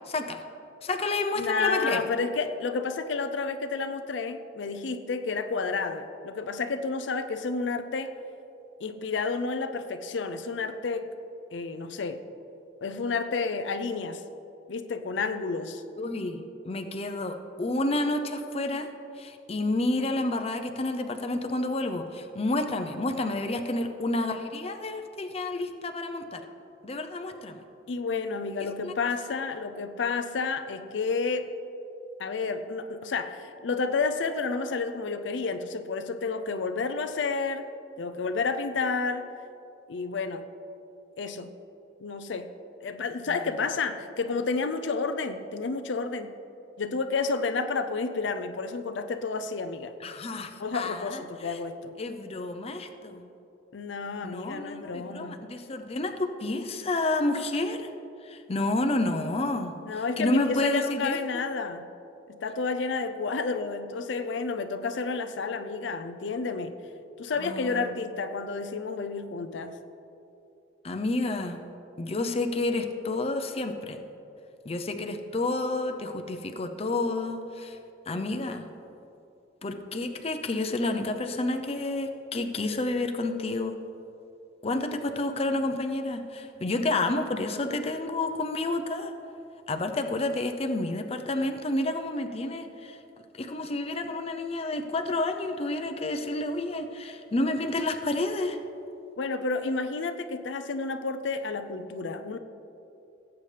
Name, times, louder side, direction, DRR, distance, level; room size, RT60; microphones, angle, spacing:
voice 1, 0.1-0.4 0.8-2.0 16.0-18.9 19.2-26.4 26.8-27.6 28.8-28.9 50.0-51.6 52.0-53.3 54.2-57.9 58.2-61.4 67.4-67.9 70.8-71.6 72.0-74.0 74.6-77.8 78.1-78.6 79.6-83.8 84.6-89.1 89.7-93.0 93.3-98.6, left 2 dB, 35° left, 6 dB, 0.6 m, -30 dB
voice 2, 1.4-8.1 8.8-11.1 11.5-12.2 12.8-14.2 14.7-15.8 27.9-31.5 32.2-37.7 38.0-39.3 39.9-40.5 41.2-41.5 42.0-42.5 42.8-46.4 46.8-50.0 50.6-51.9 53.7-55.4 59.9-61.9 62.3-66.7 67.2-69.8 99.2-102.4, left 4 dB, 80° left, 9 dB, 0.5 m, -30 dB
17.5 x 8.1 x 3.3 m, 2.8 s
head